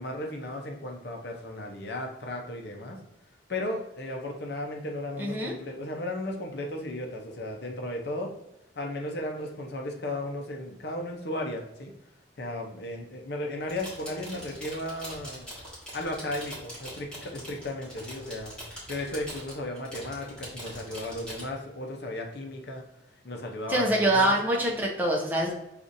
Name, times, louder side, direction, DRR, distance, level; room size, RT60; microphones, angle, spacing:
voice 1, 0.0-3.0 3.5-8.3 8.8-11.9 12.4-15.5 15.9-18.5 18.9-22.8 23.2-24.3, left 1 dB, 60° left, 1 dB, 0.7 m, -35 dB
voice 2, 5.2-5.5 23.7-25.5, right 1 dB, 10° right, -3 dB, 0.7 m, -25 dB
sound 1, 13.6-21.4, equal, 5° left, 1.5 m, -43 dB
6.6 x 2.5 x 2.6 m, 0.88 s
head